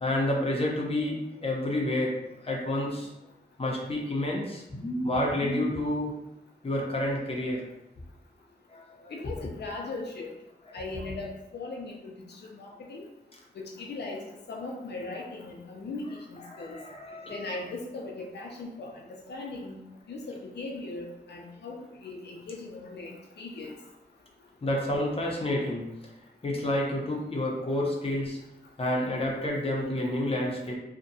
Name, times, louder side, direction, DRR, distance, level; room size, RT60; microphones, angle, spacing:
voice 1, 0.0-3.1 3.6-6.2 6.6-7.6 8.7-9.1 10.7-10.8 16.5-17.6 24.6-25.9 26.4-28.4 28.8-30.8, left 1 dB, 35° left, -2 dB, 0.6 m, -29 dB
voice 2, 9.1-10.3 10.7-13.1 13.5-16.8 17.3-18.9 19.3-19.8 20.1-23.8, left 3 dB, 85° left, -1 dB, 0.4 m, -39 dB
2.7 x 2.1 x 2.6 m, 0.89 s
wide cardioid pair, 80°, 17 cm